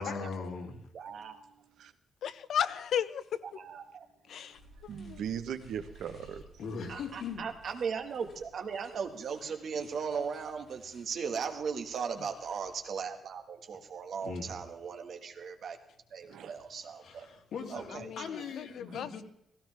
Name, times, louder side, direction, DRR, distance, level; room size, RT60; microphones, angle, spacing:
voice 1, 0.0-0.8 6.6-7.4 14.2-14.5 17.0-19.2, left 5 dB, 90° left, 1 dB, 3.0 m, -40 dB
voice 2, 0.9-1.4 3.5-4.0 6.9-15.8 16.1-17.3 17.7-18.4, right 6 dB, 55° right, 5 dB, 1.7 m, -38 dB
voice 3, 2.2-3.4 4.3-5.2 17.9-19.2, left 9 dB, 70° left, 14 dB, 0.7 m, -35 dB
sound 1, 4.5-13.0, equal, 45° left, 5.9 m, -58 dB
voice 4, 4.9-6.4 16.3-16.5 18.9-19.0, right 8 dB, 90° right, 9 dB, 1.1 m, -38 dB
16.5 x 16.5 x 3.5 m, 0.76 s
wide cardioid pair, 170°, 0 cm